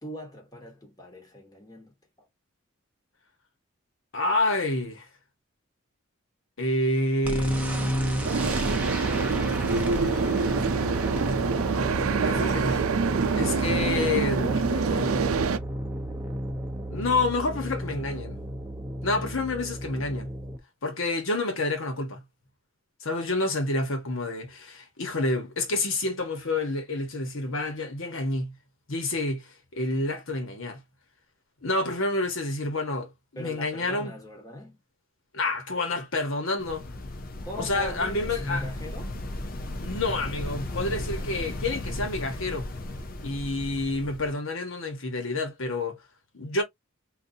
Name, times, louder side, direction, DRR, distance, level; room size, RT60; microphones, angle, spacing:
voice 1, 0.0-2.3 13.6-13.7 14.4-15.3 33.3-34.8 37.4-39.2, left 1 dB, 15° left, 1.2 m, -39 dB
voice 2, 4.1-5.1 6.6-8.3 12.2-12.9 13.3-14.4 16.9-18.5 19.0-20.3 20.8-22.2 23.0-28.5 28.9-30.8 31.6-34.1 35.3-36.8 37.6-38.6 39.8-42.7 43.2-46.0 46.3-46.6, left 2 dB, 75° left, 1.2 m, -28 dB
sound 1, 7.2-20.6, right 1 dB, 5° right, 0.7 m, -32 dB
sound 2, 8.2-15.6, right 5 dB, 85° right, 0.5 m, -26 dB
sound 3, 36.6-44.3, left 1 dB, 40° left, 0.6 m, -36 dB
3.9 x 2.6 x 2.7 m
head